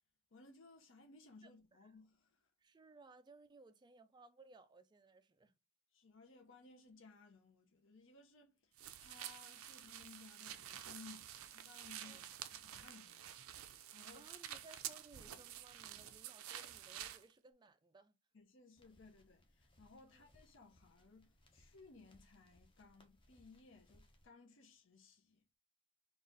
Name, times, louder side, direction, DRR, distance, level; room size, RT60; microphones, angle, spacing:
voice 1, 0.3-2.4 5.9-14.3 18.3-25.4, left 3 dB, 60° left, 0.7 m, -61 dB
voice 2, 1.4-2.0 2.6-5.6 12.0-12.2 14.1-18.2 20.1-20.3, right 3 dB, 20° right, 0.3 m, -62 dB
sound 1, 8.8-17.2, right 11 dB, 85° right, 0.5 m, -50 dB
sound 2, 18.8-24.3, left 1 dB, 25° left, 0.7 m, -69 dB
3.9 x 2.4 x 3.9 m
head